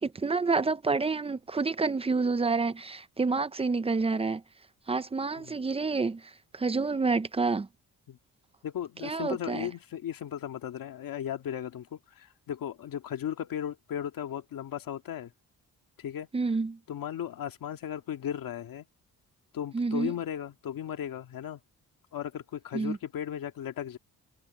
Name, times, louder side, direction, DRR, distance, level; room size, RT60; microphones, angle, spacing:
voice 1, 0.0-4.4 4.9-7.7 9.0-9.7 16.3-16.8 19.7-20.1 22.7-23.0, right 4 dB, 15° right, 0.5 m, -28 dB
voice 2, 8.6-15.3 16.0-16.3 16.9-18.9 19.5-21.6 22.1-24.0, left 10 dB, 65° left, 2.1 m, -36 dB
wide cardioid pair, 175°, 36 cm